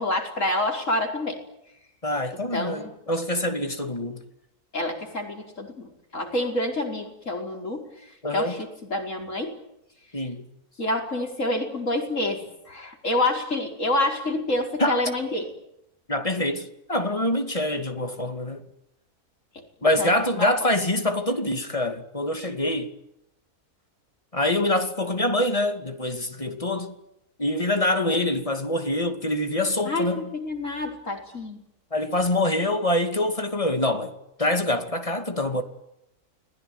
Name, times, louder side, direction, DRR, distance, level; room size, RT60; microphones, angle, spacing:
voice 1, 0.0-1.4 2.5-2.9 4.7-7.9 8.3-9.6 10.8-12.4 12.7-15.5 20.0-20.5 29.9-31.6, left 1 dB, 55° left, 5.4 m, -27 dB
voice 2, 2.0-4.2 8.2-8.6 10.1-10.5 14.8-15.0 16.1-18.6 19.8-22.9 24.3-26.9 27.4-30.3 31.9-35.6, left 1 dB, 20° left, 2.7 m, -25 dB
29.5 x 21.0 x 9.5 m
omnidirectional pair, 1.6 m